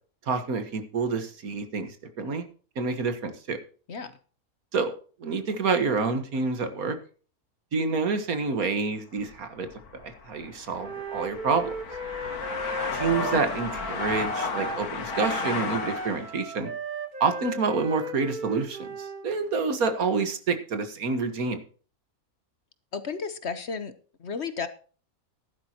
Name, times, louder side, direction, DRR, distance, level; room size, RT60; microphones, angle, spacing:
voice 1, 0.3-2.5 2.8-3.6 4.7-4.9 5.2-7.0 7.7-9.7 10.0-11.7 12.9-16.7 17.2-21.6, right 4 dB, 75° right, 9 dB, 1.9 m, -28 dB
sound 1, 9.2-16.3, left 5 dB, 85° left, 1.9 m, -34 dB
Wind instrument woodwind instrument, 10.8-14.8 15.1-19.3, right 2 dB, 35° right, 1.4 m, -36 dB
voice 2, 22.9-23.9 24.2-24.7, left 5 dB, 50° left, 12 dB, 1.2 m, -33 dB
14.5 x 11.5 x 3.0 m, 0.39 s
omnidirectional pair, 1.5 m